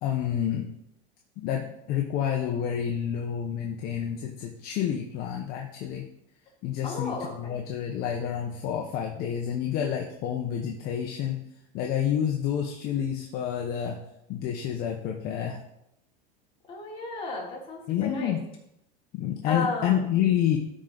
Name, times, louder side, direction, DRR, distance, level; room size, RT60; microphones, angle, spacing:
voice 1, 0.0-0.7 1.4-6.1 6.6-11.4 11.7-14.0 14.3-15.6 17.9-18.4 19.1-20.6, left 9 dB, 45° left, 1 dB, 1.1 m, -29 dB
voice 2, 6.8-7.5 16.7-18.3 19.4-20.0, left 3 dB, 25° left, -4 dB, 3.4 m, -33 dB
13.0 x 5.1 x 4.0 m, 0.80 s
supercardioid pair, 135°, 21 cm